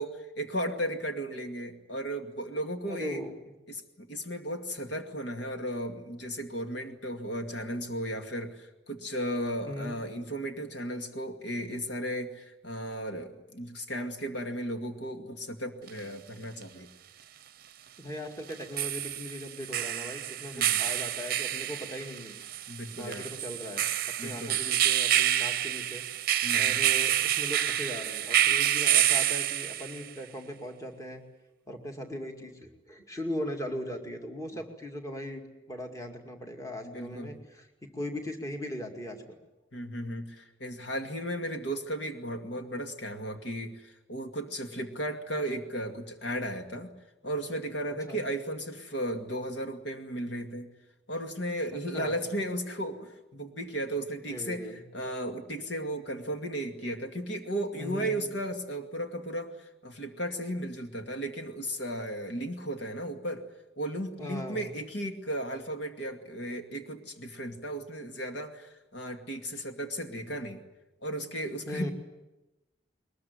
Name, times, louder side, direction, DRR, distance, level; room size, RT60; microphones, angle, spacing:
voice 1, 0.0-3.2 3.7-16.9 20.5-20.8 22.7-23.3 24.2-24.6 26.4-26.8 36.8-37.4 39.7-46.9 47.2-50.7 51.1-63.4 63.8-70.6 71.0-71.9, right 1 dB, 60° left, 4 dB, 2.3 m, -35 dB
voice 2, 2.9-3.3 9.7-10.0 18.0-22.3 23.0-26.0 26.5-31.2 31.7-39.4 48.1-48.2 51.7-52.2 54.3-54.8 57.8-58.3 64.2-64.7 71.7-71.9, equal, 15° left, 3 dB, 2.3 m, -39 dB
sound 1, 15.9-16.0 18.5-30.1, right 11 dB, 45° right, 0.8 m, -28 dB
22.0 x 21.0 x 9.7 m, 1.0 s
head